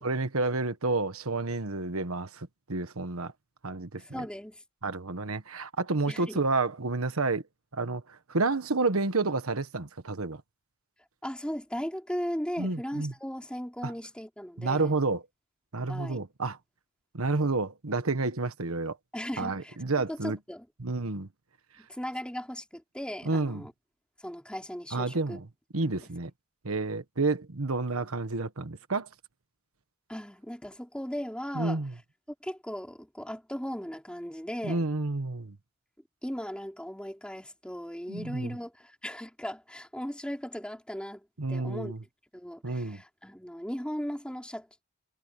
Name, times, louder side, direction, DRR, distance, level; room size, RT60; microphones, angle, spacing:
voice 1, 0.0-3.3 3.6-4.3 4.8-7.4 7.7-10.4 12.6-13.1 13.8-13.9 14.6-15.2 15.7-16.6 17.1-19.0 19.4-20.4 20.8-21.3 23.2-23.6 24.9-25.5 25.7-26.3 26.6-29.1 31.5-31.9 34.6-35.6 38.1-38.6 41.4-42.0 42.6-43.0, right 3 dB, 75° right, 1.4 m, -30 dB
voice 2, 4.0-4.6 6.1-6.4 11.2-14.9 15.9-16.2 19.1-19.8 20.1-20.6 21.9-23.7 24.2-25.4 25.8-25.9 30.1-31.8 32.4-34.8 36.2-41.9 42.3-44.7, equal, 5° left, 3.1 m, -37 dB
head